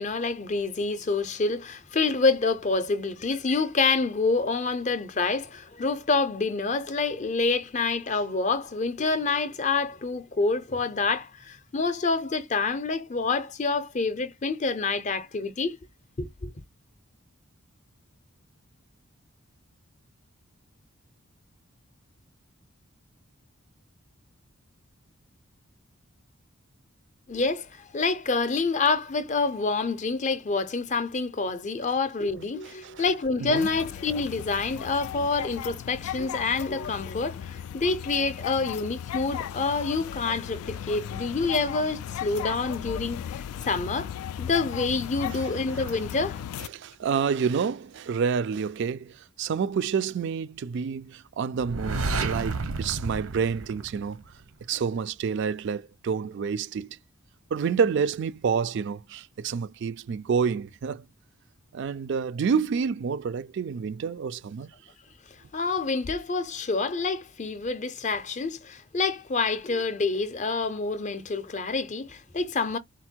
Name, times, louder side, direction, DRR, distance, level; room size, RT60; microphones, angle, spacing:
voice 1, 0.0-15.8 16.2-16.5 27.3-43.2 43.6-46.4 65.5-72.8, left 4 dB, 35° left, 0.5 m, -27 dB
voice 2, 32.6-33.0 33.4-33.7 45.3-45.4 45.9-46.0 46.6-54.2 54.7-57.0 57.5-61.1 61.7-64.7, right 6 dB, 55° right, 0.3 m, -28 dB
sound 1, 33.6-46.7, left 9 dB, 85° left, 0.3 m, -36 dB
sound 2, 51.6-54.4, right 3 dB, 85° right, 0.8 m, -31 dB
4.3 x 2.1 x 4.4 m
head